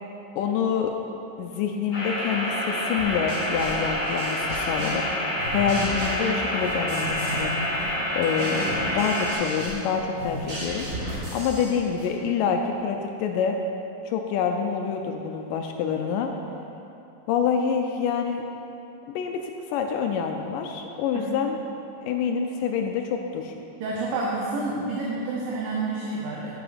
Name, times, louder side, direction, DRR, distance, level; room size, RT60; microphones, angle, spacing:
voice 1, 0.4-0.9 1.4-4.4 4.7-7.5 8.2-10.8 11.3-13.6 14.1-16.3 17.3-18.4 19.1-21.6 22.0-23.6, left 7 dB, 80° left, 4 dB, 2.0 m, -27 dB
sound 1, 1.9-9.3, left 1 dB, 20° left, 1.2 m, -28 dB
sound 2, 3.0-5.1 5.4-7.5 7.8-12.1, right 1 dB, 45° right, 2.3 m, -35 dB
voice 2, 23.8-26.5, right 2 dB, 75° right, -4 dB, 2.6 m, -29 dB
11.0 x 6.1 x 5.0 m, 2.9 s
omnidirectional pair, 4.2 m